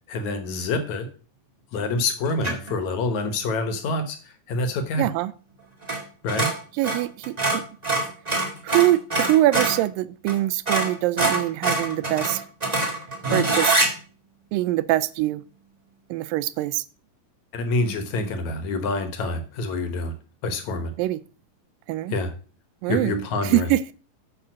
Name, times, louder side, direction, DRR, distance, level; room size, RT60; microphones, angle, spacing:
voice 1, 0.1-1.1 1.7-4.2 4.5-5.1 6.2-6.5 17.5-20.1 20.4-20.9 22.1-22.3 22.9-23.7, left 2 dB, 65° left, 8 dB, 2.3 m, -26 dB
sound 1, 2.4-2.7 5.8-6.0 6.3-9.8 10.3-10.4 10.6-13.9, right 2 dB, 20° right, 1.2 m, -24 dB
voice 2, 5.0-5.3 6.8-7.6 8.6-12.4 13.3-13.7 14.5-15.4 16.1-16.8 21.0-21.2 21.9-22.2 22.8-23.9, right 15 dB, 85° right, 17 dB, 2.3 m, -23 dB
9.1 x 6.0 x 6.2 m, 0.39 s
omnidirectional pair, 3.9 m